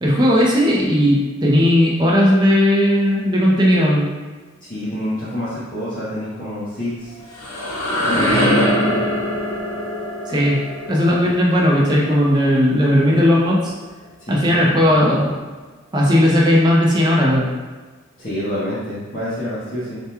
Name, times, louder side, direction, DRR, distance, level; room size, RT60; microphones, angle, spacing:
voice 1, 0.0-4.1 10.3-10.6 10.9-13.7 14.3-15.3 15.9-17.5, equal, 20° right, -4 dB, 0.5 m, -16 dB
voice 2, 4.7-7.1 8.0-9.0 11.1-11.2 14.3-14.8 18.2-20.0, equal, 40° left, -12 dB, 0.8 m, -27 dB
sound 1, 7.0-12.8, equal, 70° left, 0.6 m, -23 dB
3.4 x 2.2 x 2.8 m, 1.4 s
head